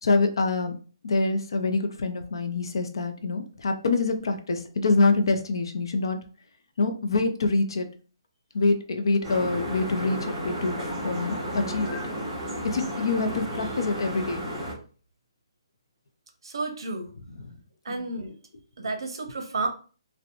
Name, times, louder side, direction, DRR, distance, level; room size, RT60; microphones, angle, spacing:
voice 1, 0.0-0.7 1.0-6.2 6.8-7.9 8.5-10.8 11.0-12.0 12.6-14.4 17.4-17.6 17.9-18.1, left 3 dB, 60° left, 7 dB, 0.4 m, -25 dB
sound 1, 9.2-14.7, equal, 10° right, 0.8 m, -32 dB
voice 2, 16.4-17.1 17.8-18.3 18.8-19.7, right 3 dB, 60° right, 4 dB, 0.6 m, -31 dB
2.8 x 2.0 x 2.5 m, 0.38 s
hypercardioid pair, 175°, 3 cm